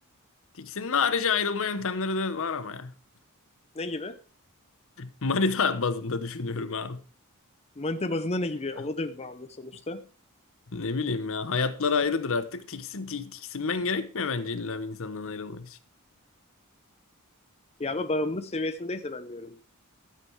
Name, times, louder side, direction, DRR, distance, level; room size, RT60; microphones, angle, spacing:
voice 1, 0.6-2.9 5.0-7.0 10.7-15.8, left 4 dB, 65° left, 1.0 m, -29 dB
voice 2, 3.7-4.1 7.8-10.0 17.8-19.6, left 2 dB, 30° left, 0.8 m, -31 dB
13.0 x 7.6 x 4.6 m
head